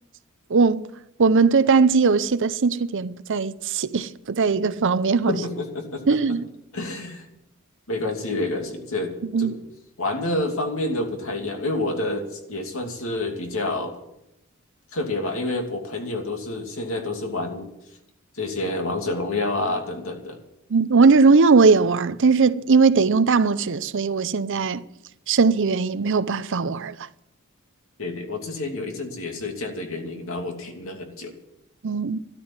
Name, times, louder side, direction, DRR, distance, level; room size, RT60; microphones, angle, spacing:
voice 1, 0.5-0.9 1.2-5.4 6.1-6.4 9.3-9.6 20.7-24.8 25.3-26.9 31.8-32.2, right 4 dB, 60° right, 0.6 m, -19 dB
voice 2, 5.3-6.0 6.7-7.3 7.9-9.6 10.0-13.9 14.9-17.7 18.3-20.4 28.0-31.4, left 2 dB, 65° left, 2.8 m, -28 dB
13.0 x 12.5 x 7.4 m
head